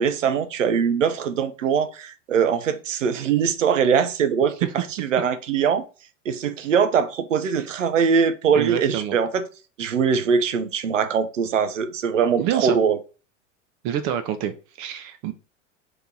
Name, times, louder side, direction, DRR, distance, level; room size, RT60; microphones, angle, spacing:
voice 1, 0.0-5.8 6.3-9.4 9.8-13.0, right 6 dB, 90° right, 0.5 m, -22 dB
voice 2, 8.6-9.2 12.4-12.8 13.8-15.3, right 10 dB, 45° right, 0.6 m, -27 dB
2.9 x 2.7 x 3.7 m
hypercardioid pair, 90°, 37 cm